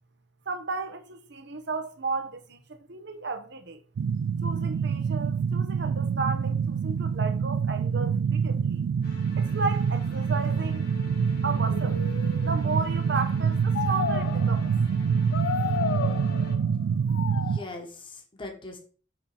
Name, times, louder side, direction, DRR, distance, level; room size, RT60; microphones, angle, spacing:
voice 1, 0.5-3.8 4.4-8.8 9.4-10.8 11.4-12.0 12.4-14.7, right 4 dB, 65° right, 1.1 m, -33 dB
sound 1, 4.0-17.6, right 6 dB, 80° right, 0.3 m, -26 dB
sound 2, 9.0-16.5, left 1 dB, 55° left, 2.3 m, -45 dB
sound 3, 10.5-10.6 11.5-12.8 13.7-14.8 15.3-16.7 17.1-17.7, left 8 dB, 85° left, 0.4 m, -33 dB
voice 2, 17.3-18.8, left 2 dB, 25° left, 1.5 m, -41 dB
6.5 x 4.1 x 5.9 m
head